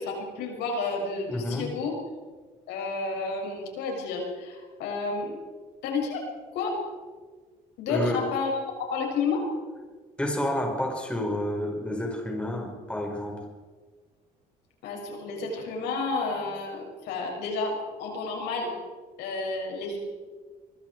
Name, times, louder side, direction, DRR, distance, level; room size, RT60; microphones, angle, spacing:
voice 1, 0.0-1.9 2.7-5.3 5.8-6.2 6.5-6.8 7.8-8.5 8.9-9.4 14.8-18.7 19.2-20.0, left 4 dB, 85° left, 1 dB, 7.0 m, -31 dB
voice 2, 1.3-1.7 7.9-8.3 10.2-13.4, left 1 dB, 5° left, 1 dB, 5.1 m, -29 dB
24.0 x 23.5 x 4.8 m, 1.4 s
cardioid pair, 110°, 17 cm